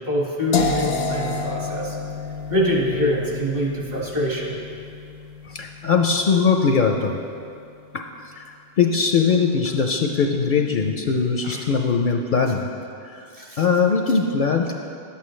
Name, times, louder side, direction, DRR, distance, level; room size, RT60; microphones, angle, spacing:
voice 1, 0.0-2.0 2.5-4.6 11.4-11.6 13.3-13.6, equal, 45° right, -3 dB, 1.8 m, -24 dB
sound 1, 0.5-6.4, left 4 dB, 90° left, 0.9 m, -29 dB
voice 2, 5.4-7.2 8.4-8.5 8.8-12.7 13.0-13.3 13.6-14.7, left 5 dB, 60° left, 3 dB, 0.6 m, -20 dB
11.5 x 8.4 x 3.2 m, 2.5 s
omnidirectional pair, 1.1 m